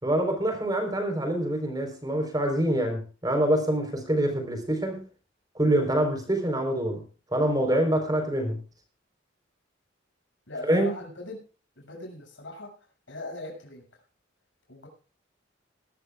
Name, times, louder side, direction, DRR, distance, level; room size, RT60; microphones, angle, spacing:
voice 1, 0.0-5.1 5.6-7.0 7.3-8.6 10.6-10.9, right 1 dB, 20° right, 5 dB, 4.0 m, -25 dB
voice 2, 10.5-11.4 11.7-12.7 13.1-14.0 14.7-14.9, left 2 dB, 70° left, 1 dB, 6.8 m, -40 dB
20.5 x 13.5 x 2.4 m, 0.36 s
head